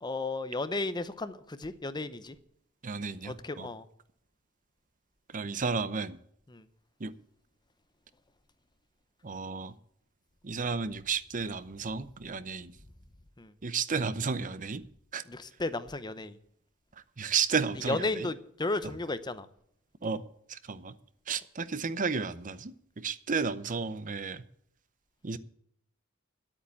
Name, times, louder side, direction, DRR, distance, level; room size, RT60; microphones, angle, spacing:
voice 1, 0.0-2.3 3.2-3.9 6.5-6.7 13.4-13.5 15.3-16.4 17.8-19.5, left 2 dB, 20° left, 13 dB, 0.7 m, -34 dB
voice 2, 2.8-3.7 5.3-6.2 7.0-7.1 9.2-9.7 10.4-12.7 13.6-14.8 15.1-15.2 17.2-18.3 20.0-20.2 20.5-20.9 21.3-24.4 25.2-25.4, right 5 dB, 40° right, 15 dB, 0.7 m, -32 dB
10.0 x 8.7 x 8.3 m, 0.70 s
head